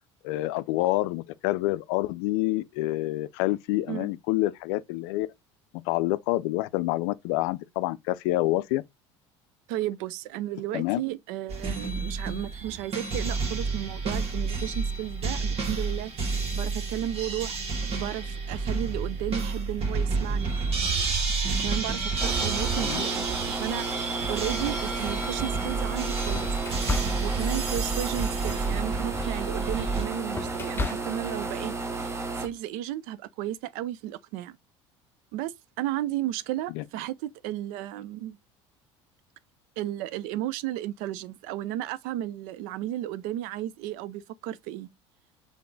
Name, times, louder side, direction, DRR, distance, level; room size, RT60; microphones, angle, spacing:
voice 1, 0.2-5.3 5.9-8.8 10.7-11.0 22.8-23.0 36.7-36.8, left 17 dB, 70° left, 0.4 m, -27 dB
voice 2, 9.7-17.6 17.9-20.5 21.6-26.5 27.2-34.6 35.3-38.4 39.8-44.9, right 13 dB, 65° right, 0.4 m, -34 dB
sound 1, 11.5-30.0, right 4 dB, 45° right, 1.7 m, -30 dB
Running AC unit, 22.2-32.5, right 3 dB, 20° right, 1.0 m, -33 dB
sound 2, 23.2-23.4 24.1-25.4 25.9-31.5, left 2 dB, 15° left, 0.6 m, -37 dB
3.8 x 3.5 x 3.8 m
hypercardioid pair, 80°, 15 cm